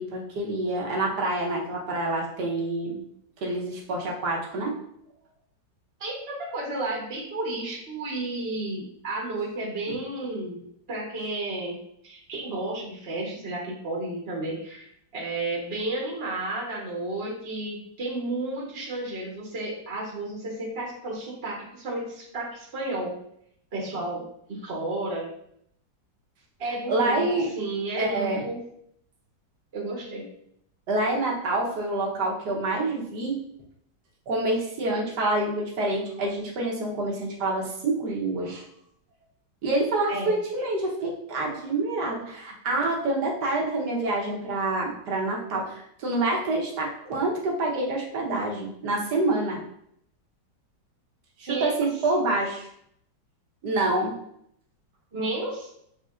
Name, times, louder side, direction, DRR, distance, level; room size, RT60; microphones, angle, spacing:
voice 1, 0.0-3.0 3.4-4.7 9.9-10.0 26.9-27.5 28.0-28.4 30.9-33.4 34.3-38.6 39.6-49.6 51.4-52.7 53.6-54.2, right 2 dB, 70° right, -1 dB, 1.6 m, -27 dB
voice 2, 6.0-10.6 10.9-11.8 12.0-23.1 23.7-24.2 24.5-25.2 26.6-28.6 29.7-30.3 40.1-40.3 51.5-51.8 55.1-55.7, right 2 dB, 40° right, -4 dB, 1.3 m, -32 dB
6.4 x 3.3 x 2.5 m, 0.71 s
omnidirectional pair, 1.9 m